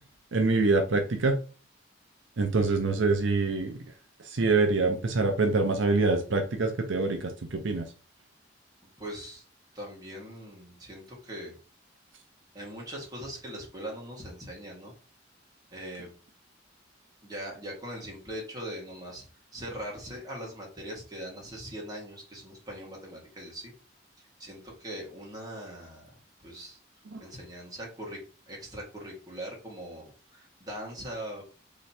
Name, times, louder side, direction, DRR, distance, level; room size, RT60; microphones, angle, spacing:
voice 1, 0.3-1.4 2.4-3.8 4.2-7.9 27.1-27.2, right 3 dB, 75° right, 4 dB, 0.6 m, -25 dB
voice 2, 9.0-9.4 9.7-11.6 12.5-14.9 15.7-16.1 17.2-19.2 19.5-23.7 24.2-26.1 26.4-26.8 27.2-28.2 28.5-31.4, equal, 20° right, -3 dB, 1.7 m, -41 dB
3.2 x 3.0 x 4.2 m, 0.37 s
head